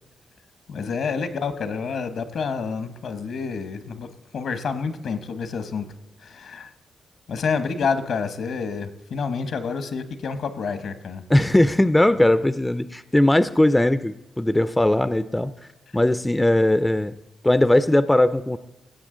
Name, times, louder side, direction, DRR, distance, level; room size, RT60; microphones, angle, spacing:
voice 1, 0.7-4.1 4.3-5.9 6.2-6.7 7.3-11.2, left 5 dB, 70° left, 12 dB, 1.0 m, -28 dB
voice 2, 11.3-15.5 15.9-17.1 17.4-18.6, left 1 dB, 10° left, 14 dB, 0.4 m, -19 dB
16.5 x 7.6 x 3.8 m, 0.98 s
cardioid pair, 100°, 0 cm